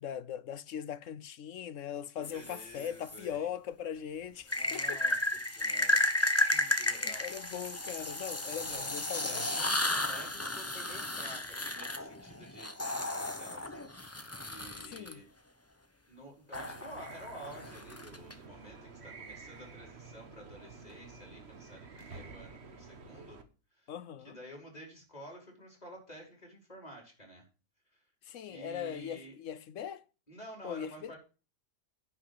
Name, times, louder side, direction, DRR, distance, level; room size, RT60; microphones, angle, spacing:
voice 1, 0.0-5.0 6.8-9.5 14.8-15.2 23.9-24.4 28.2-30.0 30.6-31.1, left 9 dB, 65° left, 1.0 m, -40 dB
voice 2, 2.2-3.5 4.5-6.0 6.5-7.3 7.5-7.7 8.4-8.9 9.2-15.3 16.1-23.4 23.7-23.9 24.2-27.4 27.9-28.0 28.5-29.4 30.3-31.2, equal, 25° left, 5.2 m, -51 dB
sound 1, 2.2-3.2 4.5-15.1 16.5-18.3, left 1 dB, 10° left, 0.9 m, -33 dB
sound 2, 16.5-23.4, right 4 dB, 50° right, 1.5 m, -50 dB
9.9 x 5.7 x 7.9 m
omnidirectional pair, 1.5 m